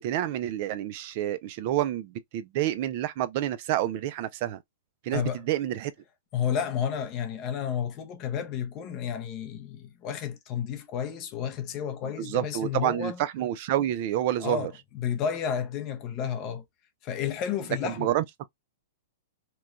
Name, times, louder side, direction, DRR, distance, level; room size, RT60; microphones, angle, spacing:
voice 1, 0.0-4.6 5.0-5.9 12.2-14.7 17.8-18.2, right 12 dB, 40° right, 0.3 m, -28 dB
voice 2, 5.1-5.4 6.3-13.2 14.4-16.6 17.0-18.1, left 8 dB, 25° left, 0.5 m, -31 dB
2.9 x 2.2 x 2.3 m
supercardioid pair, 170°, 0 cm